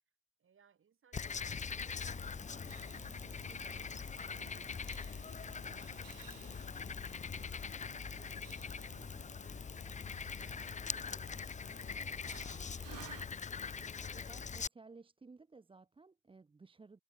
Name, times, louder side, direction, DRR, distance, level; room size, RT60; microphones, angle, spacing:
voice 1, 0.4-7.6 8.1-13.5, right 7 dB, 30° right, 6.1 m, -69 dB
Frog, 1.1-14.7, left 6 dB, 20° left, 0.8 m, -42 dB
sound 1, 1.9-13.3, right 14 dB, 55° right, 5.3 m, -58 dB
voice 2, 14.1-17.0, right 4 dB, 15° right, 1.2 m, -57 dB
cardioid pair, 125°, 40 cm